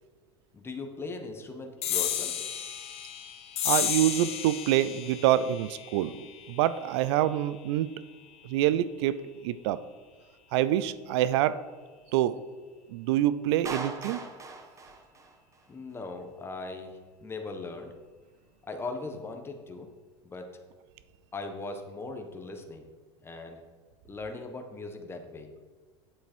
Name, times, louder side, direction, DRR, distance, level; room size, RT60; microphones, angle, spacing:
voice 1, 0.5-2.3 15.7-17.9 18.6-19.9 20.2-20.5 21.3-22.8 23.2-23.6 24.0-25.5, left 3 dB, 15° left, 4 dB, 1.2 m, -39 dB
sound 1, 1.8-8.7, left 9 dB, 45° left, 1.2 m, -34 dB
voice 2, 3.6-7.9 8.4-9.8 10.5-11.6 12.1-12.4 12.9-14.2, right 12 dB, 70° right, 15 dB, 0.5 m, -26 dB
Clapping, 13.6-15.7, right 3 dB, 20° right, 1.2 m, -40 dB
8.3 x 7.7 x 4.5 m, 1.4 s
hypercardioid pair, 100°, 15 cm